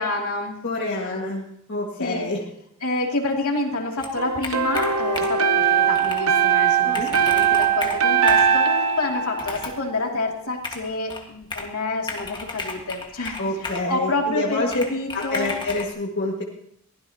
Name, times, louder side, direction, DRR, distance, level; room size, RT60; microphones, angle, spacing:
voice 1, 0.0-1.2 2.0-2.3 2.8-15.5, left 2 dB, 75° left, 0 dB, 2.7 m, -28 dB
voice 2, 0.6-2.4 6.8-7.1 13.4-14.8 15.1-16.4, left 2 dB, 55° left, -2 dB, 1.9 m, -27 dB
Computer keyboard, 4.0-5.5 5.9-6.3 6.6-6.7 6.9-8.6 9.3-9.8 10.6-11.7 12.1-13.9 14.7-15.9, left 3 dB, 20° left, 1.7 m, -34 dB
sound 1, 4.2-10.1, right 8 dB, 80° right, 1.4 m, -21 dB
23.0 x 16.0 x 2.9 m, 0.73 s
head